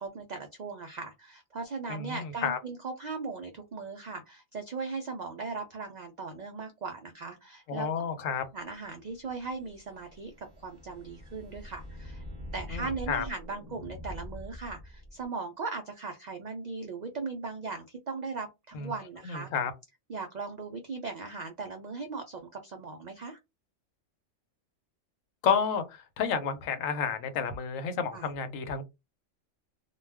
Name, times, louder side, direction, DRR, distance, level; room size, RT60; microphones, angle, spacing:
voice 1, 0.0-7.9 8.5-12.2 12.5-19.5 20.1-23.4 28.1-28.3, right 4 dB, 80° right, 0.3 m, -38 dB
voice 2, 1.9-2.6 7.7-8.4 12.7-13.2 18.7-18.9 19.2-19.7 25.4-28.8, left 6 dB, 85° left, 1.0 m, -30 dB
sound 1, 9.0-15.2, left 1 dB, 20° right, 0.8 m, -44 dB
2.3 x 2.3 x 3.3 m
omnidirectional pair, 1.3 m